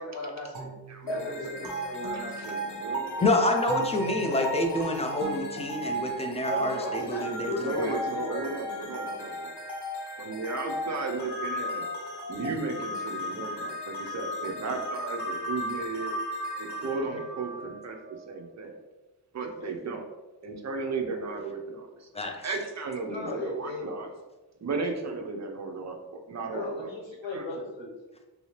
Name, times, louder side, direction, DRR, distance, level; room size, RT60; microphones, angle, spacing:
voice 1, 0.0-0.8 1.0-2.5 6.5-8.5 19.6-19.7 23.1-23.9 26.5-27.9, left 2 dB, 85° left, -2 dB, 1.0 m, -36 dB
sound 1, 0.5-3.0 3.7-6.5, right 2 dB, 60° right, 1.1 m, -44 dB
voice 2, 0.9-3.5 7.5-9.5 10.2-11.9 12.3-16.1 16.6-18.8 19.3-20.0 20.4-22.1 22.4-24.1 24.6-26.9 27.3-27.4, right 3 dB, 40° right, 3 dB, 0.6 m, -35 dB
sound 2, 1.1-18.2, equal, 70° left, 0.7 m, -35 dB
voice 3, 3.2-8.0 22.1-22.5, left 1 dB, 15° left, 3 dB, 0.4 m, -28 dB
3.2 x 2.7 x 3.1 m, 1.2 s
wide cardioid pair, 105°, 43 cm